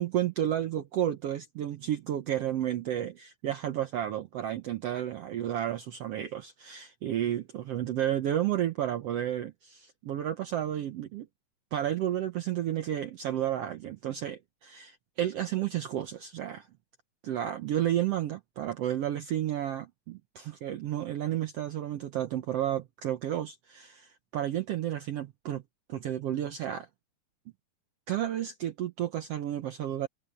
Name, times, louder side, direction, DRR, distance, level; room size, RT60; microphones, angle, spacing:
voice 1, 0.0-11.3 11.7-16.7 17.2-25.6 25.9-26.9 28.1-30.1, right 11 dB, 80° right, 1.4 m, -32 dB
omnidirectional pair, 3.9 m